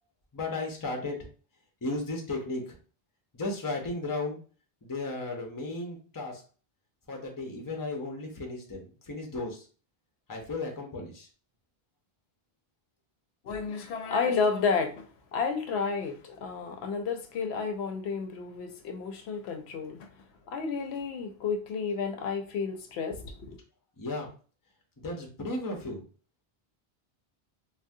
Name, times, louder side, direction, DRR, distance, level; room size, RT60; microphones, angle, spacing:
voice 1, 0.3-1.3 1.8-2.8 3.3-4.4 4.8-6.4 7.1-9.7 10.3-11.3 24.0-24.3 25.0-26.0, left 2 dB, 25° left, 0.6 m, -35 dB
voice 2, 13.5-14.9 15.3-20.0 20.5-23.6, left 5 dB, 80° left, 0.8 m, -31 dB
3.4 x 2.1 x 2.6 m
omnidirectional pair, 1.1 m